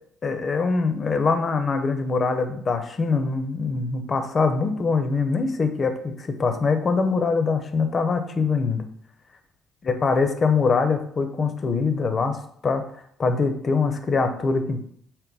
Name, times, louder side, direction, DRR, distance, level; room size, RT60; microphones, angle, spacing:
voice 1, 0.2-8.8 9.8-12.4 12.6-12.8 13.2-14.8, left 4 dB, 40° left, 7 dB, 0.5 m, -23 dB
3.9 x 2.1 x 3.9 m, 0.65 s
hypercardioid pair, 50°, 0 cm